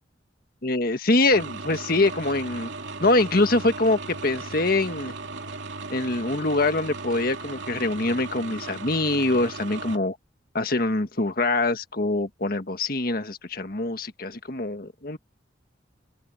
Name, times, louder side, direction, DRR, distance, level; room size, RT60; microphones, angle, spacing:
voice 1, 0.6-2.7 3.0-5.1 5.9-10.2 10.5-15.2, left 2 dB, 55° left, 1.6 m, -24 dB
sound 1, 1.3-10.0, right 3 dB, 80° right, 2.7 m, -37 dB
open air
head